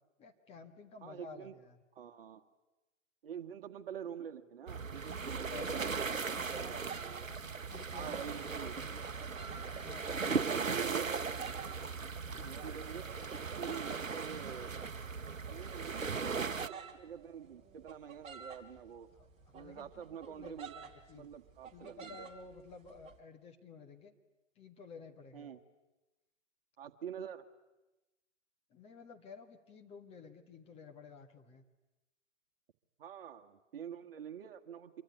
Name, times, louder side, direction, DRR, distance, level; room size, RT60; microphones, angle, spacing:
voice 1, 0.2-1.8 5.3-6.9 7.2-9.1 9.8-10.6 12.2-12.6 19.2-21.3 21.7-24.1 24.5-25.5 28.7-31.6, left 4 dB, 15° left, 4 dB, 1.6 m, -53 dB
voice 2, 1.0-1.5 2.0-2.4 3.2-7.2 7.9-8.8 10.2-11.4 12.4-14.8 15.5-19.1 19.5-20.8 21.1-22.3 25.3-25.6 26.8-27.5 33.0-35.0, right 8 dB, 45° right, 6 dB, 1.9 m, -46 dB
sound 1, 4.7-16.7, right 5 dB, 90° right, 0.9 m, -38 dB
sound 2, 6.7-23.2, right 6 dB, 15° right, 2.3 m, -53 dB
25.5 x 24.0 x 9.8 m, 1.0 s
figure-of-eight pair, 130°, 39 cm